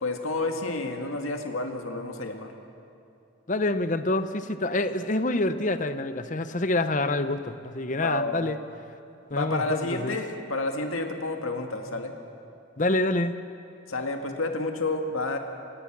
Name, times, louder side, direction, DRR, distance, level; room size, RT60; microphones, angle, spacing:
voice 1, 0.0-2.5 8.0-8.5 9.3-12.1 13.9-15.4, left 2 dB, 90° left, 4 dB, 2.0 m, -30 dB
voice 2, 3.5-8.6 9.3-10.1 12.8-13.3, left 2 dB, 40° left, 11 dB, 0.8 m, -26 dB
29.0 x 17.0 x 6.1 m, 2.6 s
head